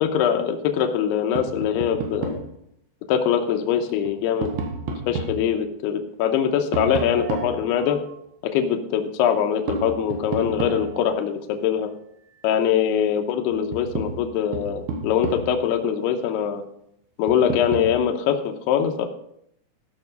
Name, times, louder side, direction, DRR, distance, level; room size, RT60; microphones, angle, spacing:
voice 1, 0.0-2.4 3.1-4.5 5.1-8.0 8.4-11.9 12.4-16.6 17.2-18.4 18.7-19.1, left 8 dB, 75° left, 4 dB, 2.8 m, -23 dB
Tap, 1.4-2.5 3.9-5.4 6.7-8.2 9.7-11.2 13.0-13.1 13.5-15.7 17.3-18.0, right 4 dB, 75° right, 3.4 m, -31 dB
14.0 x 6.5 x 5.2 m, 0.73 s
omnidirectional pair, 5.1 m